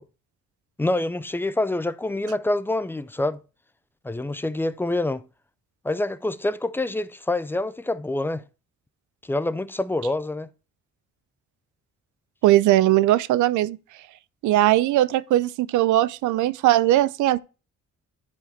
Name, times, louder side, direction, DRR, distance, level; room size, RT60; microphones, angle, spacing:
voice 1, 0.8-3.4 4.0-5.2 5.8-8.4 9.2-10.5, left 2 dB, 5° left, 0.4 m, -26 dB
voice 2, 12.4-13.8 14.4-17.4, right 14 dB, 80° right, 0.5 m, -19 dB
10.5 x 4.8 x 3.2 m
cardioid pair, 90°, 30 cm